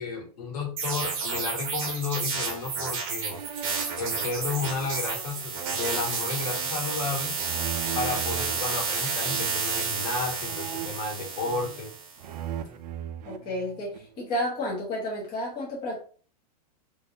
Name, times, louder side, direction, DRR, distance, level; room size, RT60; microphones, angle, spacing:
voice 1, 0.0-3.4 4.0-7.3 7.9-11.9, left 4 dB, 70° left, 1 dB, 1.5 m, -32 dB
sound 1, 0.8-12.2, right 5 dB, 35° right, 0.8 m, -31 dB
sound 2, 3.3-8.6 9.2-9.8 10.4-11.9 12.2-14.2, right 10 dB, 75° right, 0.5 m, -39 dB
voice 2, 13.3-16.0, left 1 dB, 20° left, -5 dB, 0.8 m, -31 dB
3.7 x 2.5 x 2.8 m, 0.42 s
supercardioid pair, 175°, 21 cm